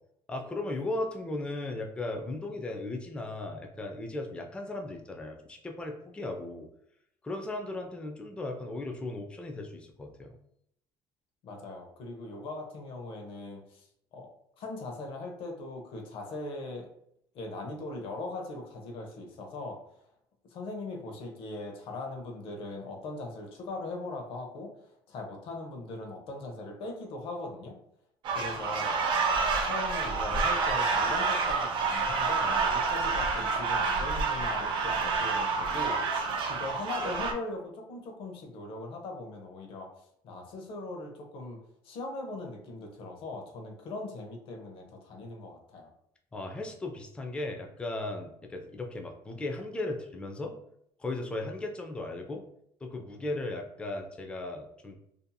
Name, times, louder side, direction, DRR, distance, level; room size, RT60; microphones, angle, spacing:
voice 1, 0.3-6.7 7.2-10.4 46.3-50.5 51.0-52.4 52.8-55.1, left 2 dB, 10° left, 3 dB, 0.3 m, -36 dB
voice 2, 11.4-13.9 14.1-14.3 14.6-16.9 17.3-19.8 20.5-24.7 25.1-27.8 28.3-28.9 29.6-36.1 36.5-39.9 40.2-41.6 41.8-45.9, left 2 dB, 60° left, 2 dB, 0.7 m, -40 dB
sound 1, 28.3-37.3, right 4 dB, 55° right, 0.5 m, -28 dB
2.7 x 2.6 x 2.2 m, 0.73 s
cardioid pair, 135°, 10 cm